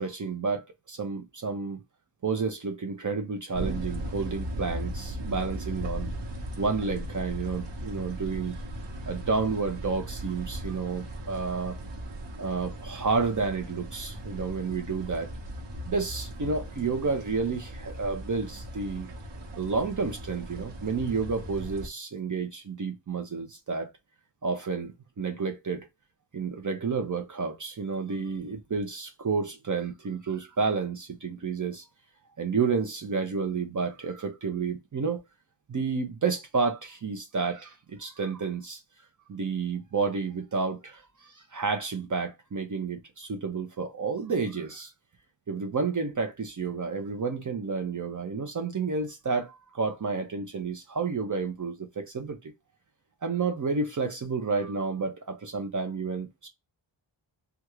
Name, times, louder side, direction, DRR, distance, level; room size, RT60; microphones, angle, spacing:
voice 1, 0.0-1.8 2.2-6.1 6.6-8.6 9.1-11.8 12.4-15.3 15.9-19.1 19.6-23.9 24.4-24.9 25.2-25.9 26.3-31.8 32.4-35.2 35.7-38.8 39.3-44.9 45.5-52.5 53.2-56.5, right 4 dB, 40° right, 0.7 m, -30 dB
sound 1, 3.5-21.9, equal, 60° right, 1.2 m, -38 dB
3.4 x 2.4 x 3.0 m
wide cardioid pair, 130°, 49 cm